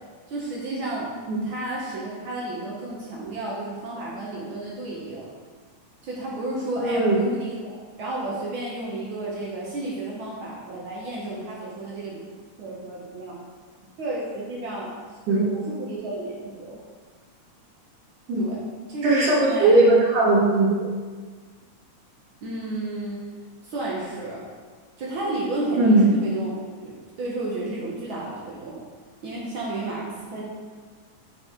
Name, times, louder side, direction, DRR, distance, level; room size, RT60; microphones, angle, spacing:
voice 1, 0.3-1.1 1.4-5.3 6.0-12.2 12.6-13.4 14.0-14.9 15.3-16.8 18.3-18.6 18.9-19.8 22.4-23.2 23.6-24.4 25.0-26.5 26.8-28.8 29.2-30.4, right 2 dB, 65° right, -5 dB, 1.2 m, -32 dB
voice 2, 6.8-7.2 15.3-15.4 18.3-18.4 19.0-20.9 25.8-26.0, right 2 dB, 85° right, -5 dB, 3.0 m, -18 dB
7.4 x 4.4 x 3.7 m, 1.5 s
omnidirectional pair, 3.4 m